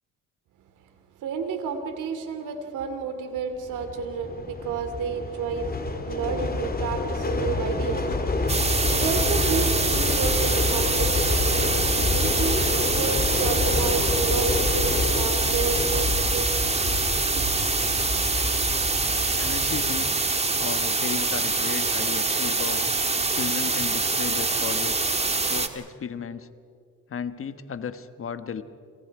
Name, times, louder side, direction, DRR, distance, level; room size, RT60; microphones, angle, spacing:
voice 1, 1.2-11.4 12.0-16.5 17.3-17.6, right 5 dB, 85° right, 7 dB, 2.9 m, -31 dB
sound 1, 3.6-20.1, left 3 dB, 30° left, 2.6 m, -28 dB
sound 2, 8.5-25.7, right 3 dB, 20° right, 1.7 m, -25 dB
sound 3, 9.0-14.6, left 6 dB, 70° left, 2.7 m, -45 dB
voice 2, 19.4-22.9 23.3-25.1 25.4-26.5 27.1-28.6, left 6 dB, 45° left, 11 dB, 1.4 m, -35 dB
29.5 x 27.5 x 4.9 m, 2.4 s
cardioid pair, 90°, 30 cm